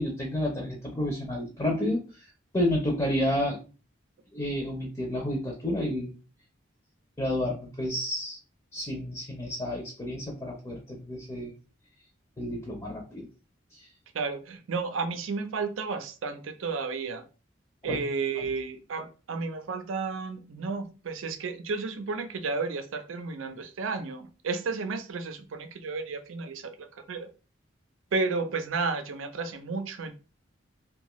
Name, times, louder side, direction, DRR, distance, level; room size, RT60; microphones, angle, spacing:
voice 1, 0.0-2.0 2.5-3.6 4.3-6.1 7.2-8.4 8.7-11.5 12.4-13.3 13.8-13.9 17.9-18.0, left 1 dB, 20° left, 0.5 m, -30 dB
voice 2, 14.1-17.2 17.8-27.3 28.1-30.1, right 4 dB, 90° right, 0.5 m, -32 dB
2.7 x 2.3 x 2.9 m
head